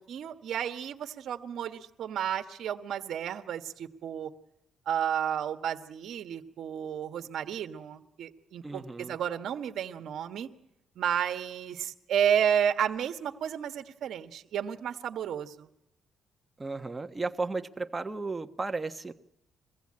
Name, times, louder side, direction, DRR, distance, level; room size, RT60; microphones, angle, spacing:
voice 1, 0.1-4.3 4.9-10.5 10.9-15.7, right 9 dB, 70° right, 8 dB, 1.4 m, -32 dB
voice 2, 8.6-9.2 16.6-19.1, right 3 dB, 20° right, 7 dB, 1.3 m, -34 dB
22.5 x 15.5 x 8.7 m, 0.83 s
cardioid pair, 90°, 0 cm